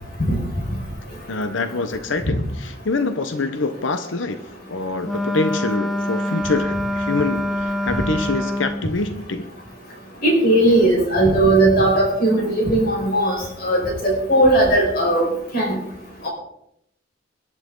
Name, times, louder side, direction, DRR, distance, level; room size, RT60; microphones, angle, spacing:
voice 1, 1.3-4.4 4.7-9.5, left 3 dB, 75° left, 9 dB, 1.0 m, -25 dB
Wind instrument woodwind instrument, 5.0-8.9, left 1 dB, ahead, 0.9 m, -25 dB
voice 2, 10.2-13.4 13.6-15.3 15.5-15.7, right 1 dB, 50° left, -2 dB, 5.3 m, -17 dB
21.0 x 11.5 x 3.9 m, 0.76 s
head